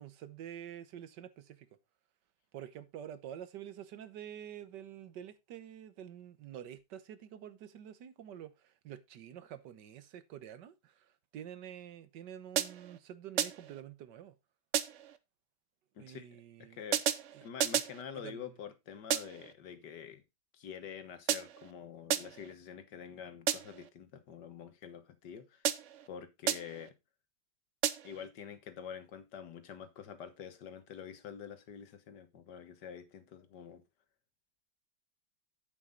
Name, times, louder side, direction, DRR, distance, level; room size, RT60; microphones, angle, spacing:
voice 1, 0.0-1.7 2.5-14.3 16.0-16.8 17.3-17.4 18.1-18.5, right 10 dB, 85° right, 1.6 m, -48 dB
sound 1, 12.6-13.0 13.4-13.8 14.7-15.2 16.9-18.0 19.1-19.5 21.3-21.7 22.1-22.5 23.5-23.9 25.6-26.1 26.5-26.9 27.8-28.3, right 10 dB, 60° right, 0.8 m, -33 dB
voice 2, 16.0-16.3 16.6-17.0 17.4-20.2 20.5-25.7 26.1-26.9 28.0-33.8, left 8 dB, 80° left, 1.8 m, -47 dB
8.4 x 7.4 x 3.7 m
omnidirectional pair, 1.8 m